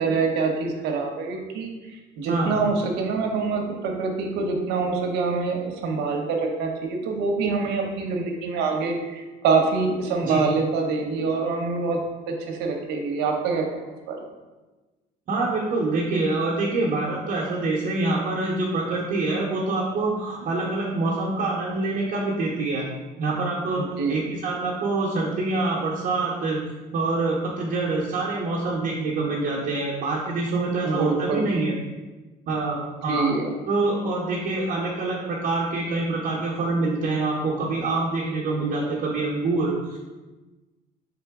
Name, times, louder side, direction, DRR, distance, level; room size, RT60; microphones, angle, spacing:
voice 1, 0.0-1.7 2.2-13.7 14.1-14.2 23.8-24.2 30.8-31.4 33.1-33.5, right 4 dB, 85° right, 2 dB, 0.7 m, -25 dB
voice 2, 15.3-22.9 23.2-23.8 24.1-26.6 26.9-31.7 32.5-33.3 33.7-40.0, right 3 dB, 55° right, -5 dB, 0.8 m, -25 dB
3.8 x 3.6 x 3.5 m, 1.2 s
cardioid pair, 110°, 17 cm